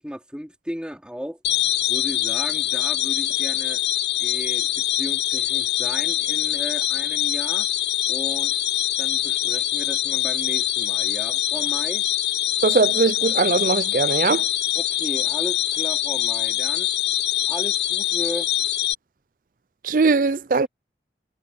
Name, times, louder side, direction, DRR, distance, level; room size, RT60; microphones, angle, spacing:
voice 1, 0.0-1.4 1.9-3.8 4.2-7.7 8.1-8.6 9.0-12.0 14.7-16.9 17.5-18.5, equal, 5° right, 4.3 m, -35 dB
sound 1, 1.4-18.9, left 12 dB, 70° left, 1.0 m, -24 dB
voice 2, 12.6-14.5 19.8-20.7, right 4 dB, 50° right, 0.4 m, -20 dB
head